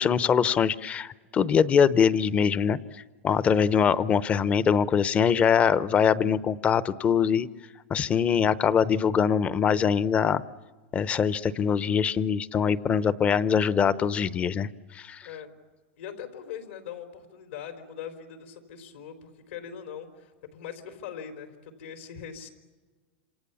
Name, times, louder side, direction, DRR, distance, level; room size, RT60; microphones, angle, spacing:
voice 1, 0.0-2.8 3.2-7.5 7.9-10.4 10.9-14.7 14.9-15.2, left 7 dB, 20° left, 17 dB, 0.7 m, -23 dB
voice 2, 16.0-22.5, left 8 dB, 80° left, 6 dB, 4.0 m, -41 dB
27.5 x 26.5 x 7.1 m, 1.4 s
supercardioid pair, 150°, 6 cm